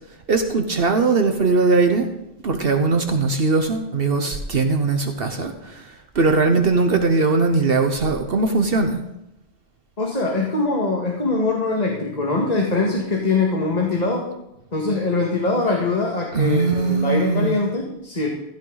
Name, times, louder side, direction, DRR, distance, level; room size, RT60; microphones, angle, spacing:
voice 1, 0.3-2.1 2.4-9.0 16.3-17.6, right 3 dB, 65° right, 5 dB, 1.3 m, -20 dB
voice 2, 10.0-14.3 14.7-18.3, left 3 dB, 40° left, -1 dB, 2.0 m, -22 dB
16.0 x 14.5 x 4.0 m, 0.85 s
omnidirectional pair, 1.1 m